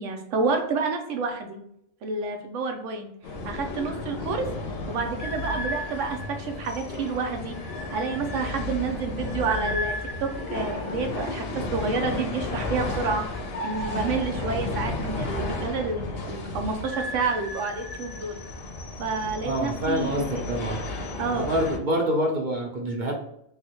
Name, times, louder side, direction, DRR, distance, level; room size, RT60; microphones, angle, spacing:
voice 1, 0.0-1.6 2.0-3.1 3.4-4.5 4.9-7.6 7.9-13.2 13.6-18.4 19.0-20.4 21.2-21.5, right 4 dB, 90° right, 4 dB, 1.0 m, -29 dB
sound 1, 3.2-21.8, left 2 dB, 60° left, 0.8 m, -33 dB
voice 2, 19.4-20.8 21.3-23.1, equal, 50° right, 0 dB, 0.6 m, -26 dB
3.3 x 2.3 x 2.9 m, 0.73 s
omnidirectional pair, 1.2 m